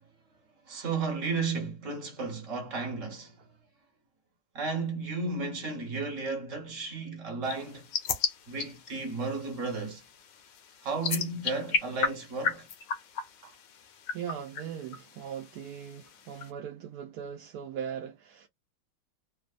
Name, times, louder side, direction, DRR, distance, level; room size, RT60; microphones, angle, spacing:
voice 1, 0.7-3.5 4.5-7.9 8.5-10.0 10.8-12.7 13.4-13.5, right 4 dB, 45° right, 1.5 m, -33 dB
sound 1, 7.4-16.5, left 6 dB, 75° left, 1.3 m, -36 dB
voice 2, 14.1-18.5, right 8 dB, 75° right, 0.9 m, -39 dB
3.2 x 2.0 x 2.4 m
omnidirectional pair, 2.1 m